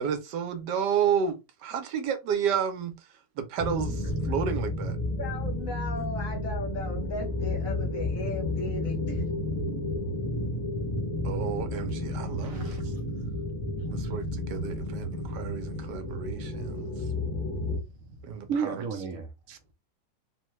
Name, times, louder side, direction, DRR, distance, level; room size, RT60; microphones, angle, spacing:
voice 1, 0.0-2.9 3.4-5.0 5.9-6.0 11.2-12.8 13.9-16.9 18.2-18.8 19.5-19.6, right 7 dB, 80° right, 1.3 m, -31 dB
sound 1, 3.6-17.8, left 1 dB, 25° left, 1.1 m, -31 dB
voice 2, 5.2-9.2, left 3 dB, 60° left, 1.1 m, -37 dB
voice 3, 12.4-12.9 13.8-14.0 17.2-19.3, right 6 dB, 65° right, 0.9 m, -36 dB
3.7 x 2.2 x 3.1 m
omnidirectional pair, 1.8 m